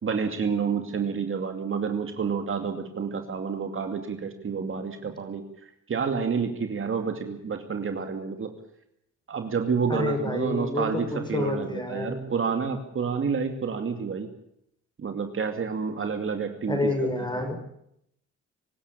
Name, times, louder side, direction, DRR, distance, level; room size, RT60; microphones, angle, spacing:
voice 1, 0.0-5.4 5.9-8.5 9.3-14.3 15.0-17.5, right 6 dB, 45° right, 6 dB, 2.6 m, -29 dB
voice 2, 9.9-12.3 16.7-17.6, left 2 dB, 15° left, 6 dB, 5.8 m, -28 dB
24.5 x 13.0 x 9.9 m, 0.76 s
cardioid pair, 90°, 30 cm